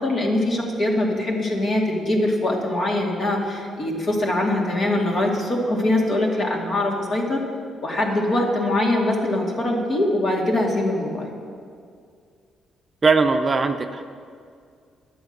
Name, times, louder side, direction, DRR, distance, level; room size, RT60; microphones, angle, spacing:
voice 1, 0.0-7.4 7.8-11.3, left 1 dB, 45° left, -1 dB, 2.4 m, -22 dB
voice 2, 13.0-14.0, right 4 dB, 30° right, 6 dB, 0.6 m, -19 dB
11.0 x 8.0 x 6.7 m, 2.2 s
cardioid pair, 90°, 0 cm